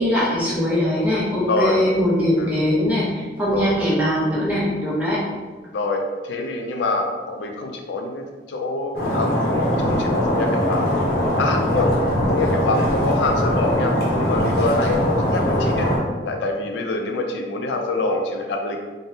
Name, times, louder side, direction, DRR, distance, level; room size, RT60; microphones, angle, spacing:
voice 1, 0.0-5.2, equal, 10° right, -8 dB, 0.7 m, -21 dB
voice 2, 1.5-1.8 2.4-2.5 3.5-3.7 5.7-10.9 11.4-12.0 12.3-18.8, left 2 dB, 80° left, 3 dB, 0.3 m, -25 dB
Stream, 8.9-16.0, equal, 55° left, 0.7 m, -21 dB
3.4 x 2.1 x 2.6 m, 1.4 s
head